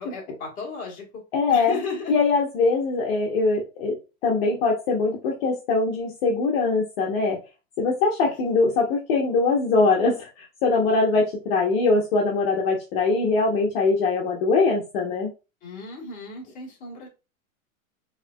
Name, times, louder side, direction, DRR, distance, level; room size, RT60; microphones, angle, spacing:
voice 1, 0.0-1.2 1.5-2.1 8.2-8.3 15.6-17.1, left 3 dB, 20° left, -3 dB, 1.4 m, -34 dB
voice 2, 1.3-1.7 2.1-3.9 4.2-7.4 7.8-10.3 10.6-15.3, left 3 dB, 45° left, -1 dB, 0.9 m, -22 dB
4.8 x 2.8 x 2.2 m, 0.29 s
supercardioid pair, 160°, 42 cm